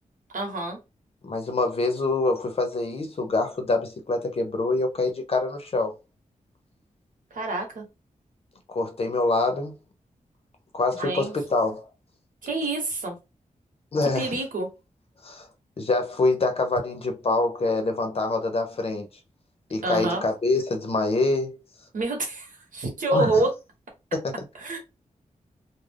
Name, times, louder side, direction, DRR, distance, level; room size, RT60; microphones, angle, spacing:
voice 1, 0.3-0.8 7.3-7.8 11.0-11.3 12.4-13.2 14.1-14.7 19.8-20.2 21.9-23.5 24.5-24.8, right 2 dB, 80° right, 1.0 m, -27 dB
voice 2, 1.2-5.9 8.7-9.8 10.7-11.8 13.9-14.4 15.2-15.5 15.8-19.1 19.7-21.5 23.1-23.4 24.1-24.3, left 2 dB, 45° left, 0.6 m, -25 dB
2.4 x 2.1 x 3.3 m
wide cardioid pair, 135°, 14 cm